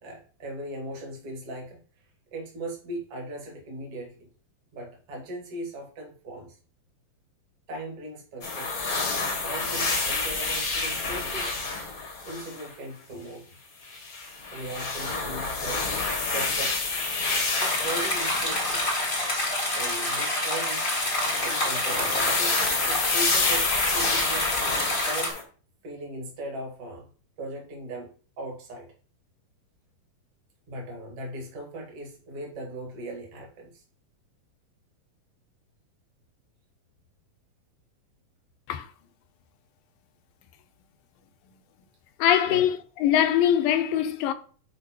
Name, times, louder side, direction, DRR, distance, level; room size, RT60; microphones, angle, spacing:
voice 1, 0.0-1.8 2.3-4.3 4.7-6.6 7.7-9.0 9.4-11.6 12.2-13.6 14.5-15.9 16.3-17.0 17.5-18.8 19.7-20.9 21.4-22.6 22.9-24.5 25.0-25.3 25.8-27.1 27.4-28.9 30.7-33.8 42.5-42.7, right 1 dB, 45° right, 2.7 m, -38 dB
sound 1, 8.4-12.7 13.8-19.3 19.8-20.1 20.6-25.4, left 3 dB, 50° left, 1.0 m, -29 dB
sound 2, 17.6-25.3, left 1 dB, 25° left, 1.1 m, -27 dB
voice 2, 42.2-44.3, left 10 dB, 90° left, 2.5 m, -22 dB
11.0 x 4.6 x 3.1 m
omnidirectional pair, 4.0 m